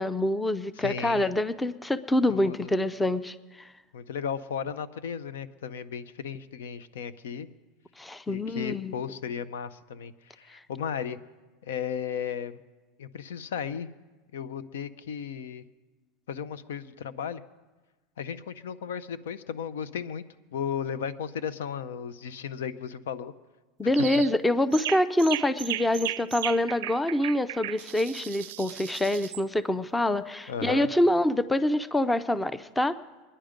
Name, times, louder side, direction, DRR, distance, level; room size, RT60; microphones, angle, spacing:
voice 1, 0.0-3.7 8.0-8.9 23.8-33.0, left 1 dB, 10° left, 15 dB, 0.5 m, -26 dB
voice 2, 0.8-1.3 2.3-2.7 3.9-7.5 8.3-11.2 11.6-12.6 13.0-13.9 14.3-15.6 16.3-17.4 18.2-20.2 20.5-23.3 30.5-30.9, left 7 dB, 90° left, 15 dB, 0.7 m, -35 dB
sound 1, 23.9-24.3 24.7-29.4, right 15 dB, 80° right, 0.4 m, -36 dB
22.5 x 10.0 x 5.2 m, 1.3 s
supercardioid pair, 120°, 0 cm